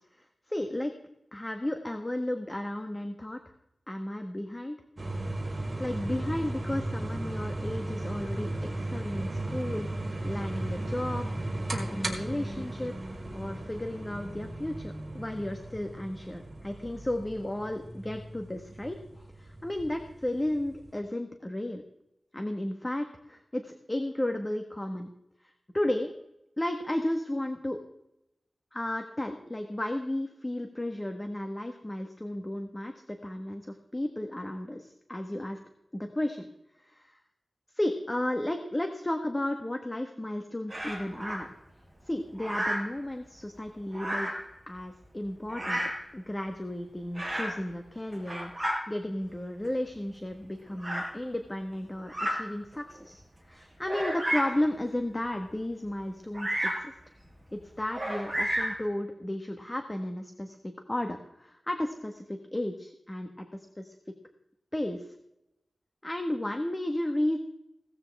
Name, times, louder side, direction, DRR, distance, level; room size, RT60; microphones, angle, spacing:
voice 1, 0.2-0.9 1.3-3.4 3.9-4.8 5.8-21.8 22.3-25.1 25.7-26.1 26.6-27.8 28.7-35.6 35.9-36.4 36.8-37.2 37.7-41.5 42.0-44.3 44.7-45.8 46.1-53.2 53.5-56.9 57.5-60.6 60.9-63.9 64.7-65.1 66.0-67.4, left 1 dB, 20° left, 5 dB, 1.5 m, -34 dB
sound 1, 5.0-20.9, right 1 dB, 35° right, 4.4 m, -36 dB
Bird vocalization bird call bird song, 40.7-41.4 42.4-42.9 43.9-44.5 45.5-46.0 47.1-47.6 48.1-48.8 49.6-49.7 50.8-51.1 52.0-52.4 53.0-53.1 53.9-54.6 56.3-56.9 57.9-58.8, equal, 10° right, 6.1 m, -31 dB
17.5 x 13.5 x 3.6 m, 0.84 s
wide cardioid pair, 80°, 0 cm